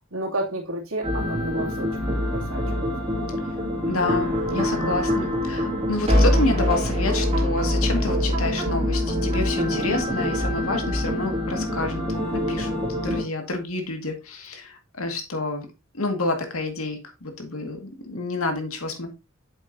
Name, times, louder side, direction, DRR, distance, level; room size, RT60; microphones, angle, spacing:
voice 1, 0.1-3.2 4.7-5.0 9.6-10.0, right 1 dB, 90° right, 2.6 m, -32 dB
sound 1, 1.0-13.2, left 1 dB, 30° right, 2.5 m, -24 dB
voice 2, 3.9-12.0 12.3-12.7 13.0-15.7 15.9-19.1, left 2 dB, 80° left, 2.0 m, -28 dB
8.8 x 7.1 x 2.7 m
head